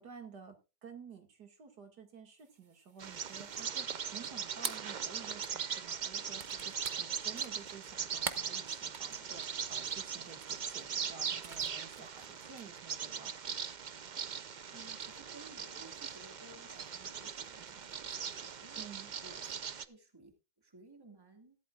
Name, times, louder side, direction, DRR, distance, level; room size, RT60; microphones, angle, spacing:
voice 1, 0.0-13.5 18.8-19.1, right 6 dB, 80° right, 5 dB, 2.7 m, -52 dB
sound 1, 2.4-12.8, right 5 dB, 35° right, 0.9 m, -46 dB
Bird vocalization bird call bird song, 3.0-19.8, right 7 dB, 60° right, 0.4 m, -40 dB
voice 2, 14.7-18.8 19.2-21.6, right 2 dB, 15° right, 4 dB, 2.3 m, -57 dB
15.0 x 13.0 x 2.5 m, 0.29 s
omnidirectional pair, 1.7 m